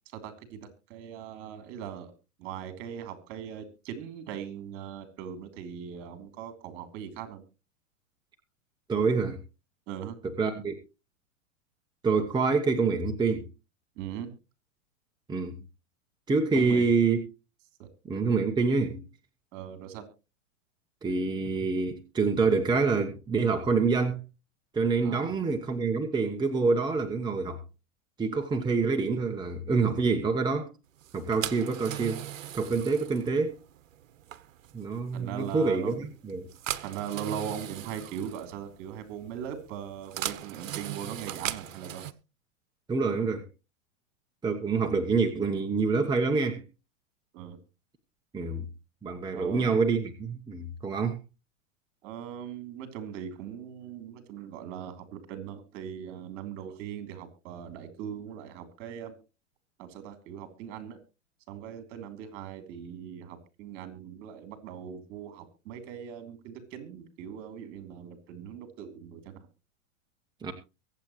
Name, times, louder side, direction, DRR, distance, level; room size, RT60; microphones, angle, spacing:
voice 1, 0.1-2.1 2.4-7.4 9.9-10.2 14.0-14.3 16.5-16.9 17.8-17.9 19.5-20.0 25.0-25.3 35.1-36.1 36.8-42.1 47.3-47.6 49.3-49.8 52.0-59.1 59.8-61.0 61.5-69.5, right 9 dB, 45° right, 3.2 m, -40 dB
voice 2, 8.9-9.4 10.4-10.8 12.0-13.5 15.3-15.6 16.3-17.2 18.1-19.1 21.0-24.2 24.7-27.6 28.2-30.7 31.1-32.2 32.5-33.6 34.7-36.5 42.9-43.5 44.4-46.6 48.3-48.7 49.0-51.2 70.4-70.5, right 4 dB, 10° right, 1.1 m, -26 dB
sound 1, 31.0-42.1, right 11 dB, 70° right, 1.0 m, -39 dB
23.5 x 8.2 x 3.1 m
hypercardioid pair, 110°, 40 cm